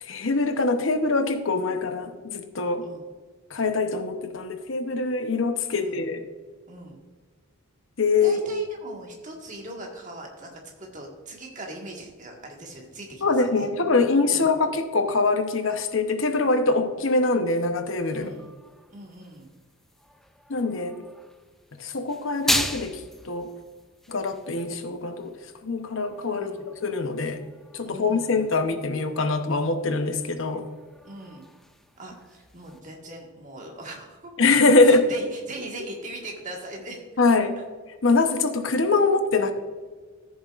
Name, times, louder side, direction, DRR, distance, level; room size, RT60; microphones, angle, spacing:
voice 1, 0.0-2.9 3.5-6.3 8.0-8.5 13.2-18.3 20.5-21.0 21.8-23.5 24.1-25.4 25.6-27.4 27.7-30.7 34.4-35.1 37.2-37.6 38.0-39.5, left 3 dB, 60° left, 7 dB, 0.8 m, -23 dB
voice 2, 6.7-7.0 8.2-13.7 14.3-14.5 18.1-18.5 18.9-19.5 26.3-26.7 27.8-28.4 31.0-31.4 32.0-34.3 34.8-37.0, right 1 dB, 35° right, 0 dB, 1.6 m, -40 dB
sound 1, 17.9-32.8, left 1 dB, ahead, 0.3 m, -37 dB
14.0 x 7.1 x 2.5 m, 1.4 s
head